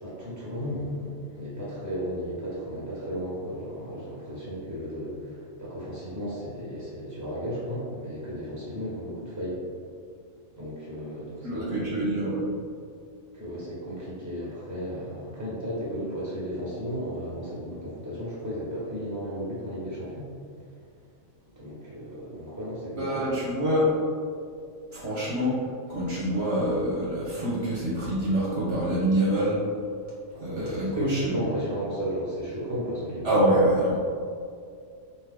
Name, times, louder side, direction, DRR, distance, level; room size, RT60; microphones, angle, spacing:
voice 1, 0.0-9.6 10.6-12.1 13.3-20.3 21.5-23.3 30.3-33.3, equal, 15° right, -7 dB, 1.2 m, -34 dB
voice 2, 11.4-12.5 23.0-23.9 24.9-25.6 25.9-29.6 30.4-31.4 33.2-34.0, equal, 60° right, -7 dB, 1.1 m, -25 dB
4.4 x 2.7 x 3.7 m, 2.3 s
omnidirectional pair, 1.3 m